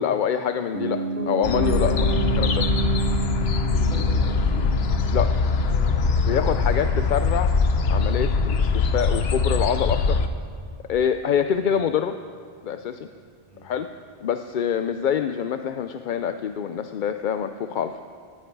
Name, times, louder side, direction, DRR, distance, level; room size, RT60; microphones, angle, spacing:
voice 1, 0.0-2.1 2.4-2.7 5.1-5.3 6.3-7.5 7.9-10.2 10.9-12.1 12.6-13.1 13.6-13.9 14.2-18.0, left 8 dB, 55° left, 9 dB, 0.6 m, -25 dB
Piano, 0.7-10.7 11.0-11.1, right 4 dB, 55° right, 1.4 m, -31 dB
sound 1, 1.4-10.3, left 4 dB, 75° left, 1.1 m, -22 dB
voice 2, 1.8-2.5 3.6-6.8 8.3-8.6 13.5-13.6, left 1 dB, 35° left, -5 dB, 5.9 m, -40 dB
19.0 x 15.0 x 4.6 m, 2.1 s
omnidirectional pair, 1.1 m